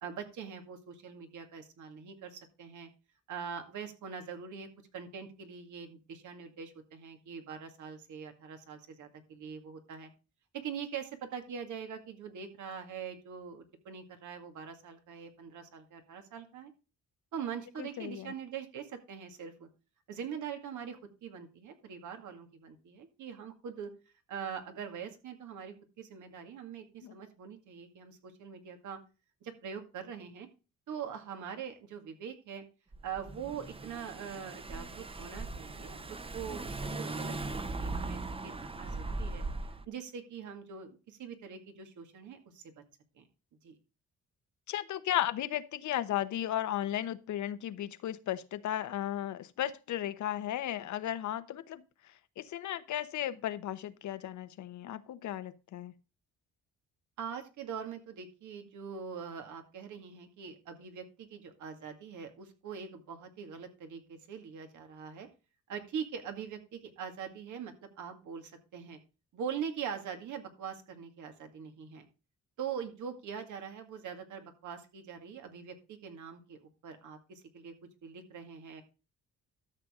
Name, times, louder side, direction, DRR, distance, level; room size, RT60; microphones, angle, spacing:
voice 1, 0.0-2.9 3.3-4.7 4.9-10.1 10.5-16.7 17.3-19.7 20.1-23.9 24.3-29.0 29.4-30.5 30.9-32.6 33.0-36.0 36.3-37.3 37.8-39.4 39.9-42.7 43.2-43.3 43.6-43.8 57.2-65.3 65.7-69.0 69.3-72.1 72.6-77.7 78.0-78.8, right 7 dB, 75° right, 2.2 m, -43 dB
voice 2, 17.8-18.3 27.0-27.1 44.7-55.9, left 12 dB, 70° left, 1.0 m, -35 dB
Car / Engine, 32.9-39.9, right 2 dB, 20° right, 0.8 m, -39 dB
13.0 x 6.9 x 3.7 m
cardioid pair, 90°, 30 cm